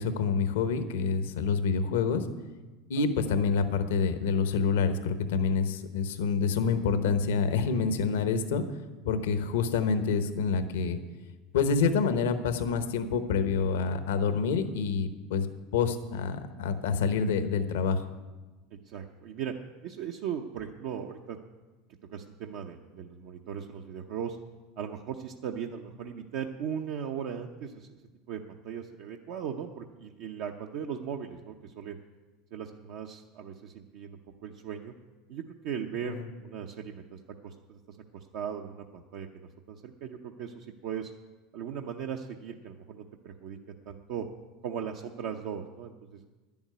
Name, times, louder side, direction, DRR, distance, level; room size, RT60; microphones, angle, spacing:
voice 1, 0.0-2.3 2.9-8.6 9.0-11.0 11.5-15.5 15.7-18.1 36.0-36.3, left 5 dB, 85° left, 9 dB, 0.9 m, -27 dB
voice 2, 18.7-19.5 19.8-21.4 22.1-24.4 24.8-27.9 28.3-32.0 32.5-34.9 35.3-41.1 41.5-43.6 43.9-44.3 44.6-46.2, right 8 dB, 65° right, 3 dB, 0.7 m, -38 dB
10.5 x 7.1 x 9.3 m, 1.2 s
supercardioid pair, 105°, 0 cm